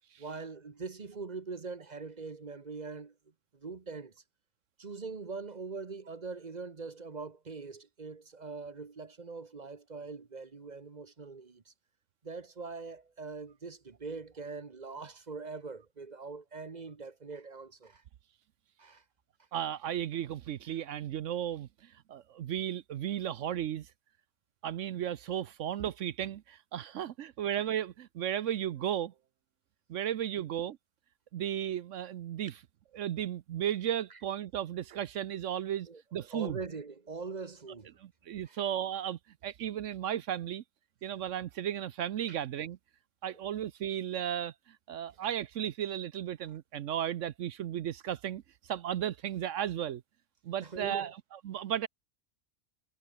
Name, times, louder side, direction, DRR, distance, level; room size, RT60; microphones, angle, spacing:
voice 1, 0.2-3.1 3.5-4.1 4.8-11.7 12.2-18.0 18.8-19.0 34.1-34.2 35.9-37.9 38.4-38.6 42.3-42.4 50.6-51.1, right 4 dB, 35° right, 1.1 m, -42 dB
voice 2, 19.5-23.9 24.6-29.1 29.9-30.8 31.3-32.6 32.9-36.6 38.0-40.6 41.0-42.8 43.2-48.4 48.7-50.0 50.4-51.9, right 10 dB, 65° right, 1.0 m, -35 dB
omnidirectional pair, 1.4 m